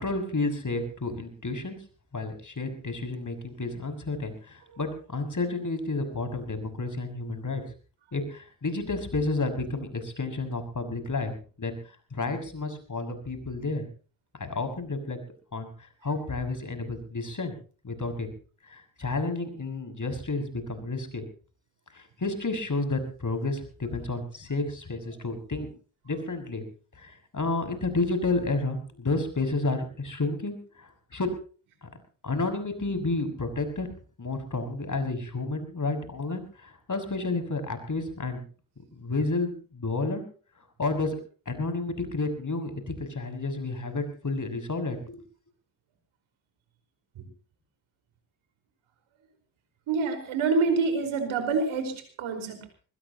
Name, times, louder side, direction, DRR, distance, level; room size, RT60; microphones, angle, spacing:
voice 1, 0.0-1.8 2.1-7.6 8.1-11.7 12.1-13.8 14.4-15.2 15.5-17.5 17.8-18.3 18.7-21.2 21.9-25.7 26.0-26.6 26.9-31.3 31.8-31.9 32.2-33.9 34.2-38.4 38.9-40.2 40.8-41.2 41.5-45.2, left 3 dB, 40° left, 7 dB, 6.5 m, -31 dB
voice 2, 49.9-51.9 52.2-52.6, right 4 dB, 85° right, 7 dB, 5.0 m, -26 dB
22.0 x 21.0 x 3.0 m, 0.39 s
supercardioid pair, 50°, 47 cm